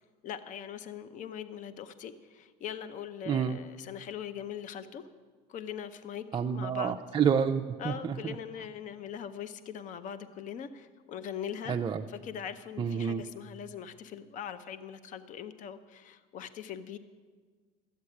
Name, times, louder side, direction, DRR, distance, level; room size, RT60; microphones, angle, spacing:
voice 1, 0.0-5.0 5.5-7.0 7.8-11.8 12.1-17.0, left 8 dB, 45° left, 12 dB, 0.7 m, -41 dB
voice 2, 3.3-3.6 6.3-8.3 11.6-12.1 12.8-13.2, right 7 dB, 25° right, 2 dB, 0.5 m, -29 dB
13.0 x 8.6 x 9.6 m, 1.5 s
cardioid pair, 130°, 18 cm